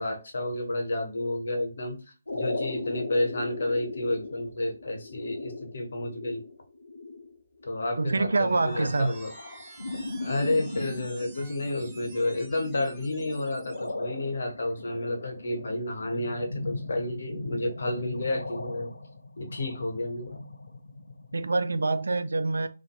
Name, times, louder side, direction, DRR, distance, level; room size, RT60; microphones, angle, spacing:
voice 1, 0.0-2.0 2.3-6.4 7.6-9.3 10.2-18.9 19.4-20.4, left 2 dB, 60° left, 0.8 m, -31 dB
sound 1, 2.3-21.5, left 2 dB, 80° left, 0.4 m, -39 dB
sound 2, 8.0-13.9, right 3 dB, 15° right, 0.6 m, -50 dB
voice 2, 8.0-9.1 21.3-22.7, right 3 dB, 70° right, 0.3 m, -26 dB
2.5 x 2.4 x 2.3 m
figure-of-eight pair, 145°, 0 cm